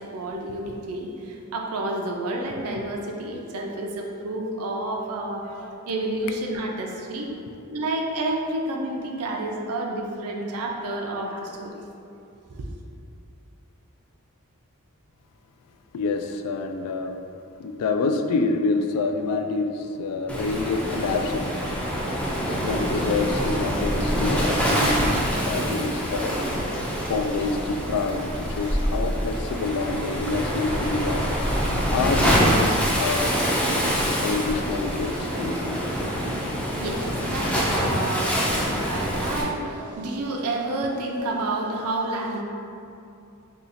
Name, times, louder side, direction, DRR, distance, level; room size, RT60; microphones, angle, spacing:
voice 1, 0.0-7.3 7.7-11.7 12.5-12.6 36.4-42.4, right 2 dB, 75° right, 1 dB, 0.5 m, -30 dB
voice 2, 15.9-17.2 17.6-21.5 22.6-26.4 27.1-31.3 31.9-33.4 34.2-35.8, left 3 dB, 85° left, 10 dB, 0.3 m, -27 dB
Waves surf, 20.3-39.4, equal, 5° left, 0.4 m, -25 dB
2.8 x 2.7 x 4.1 m, 2.6 s
head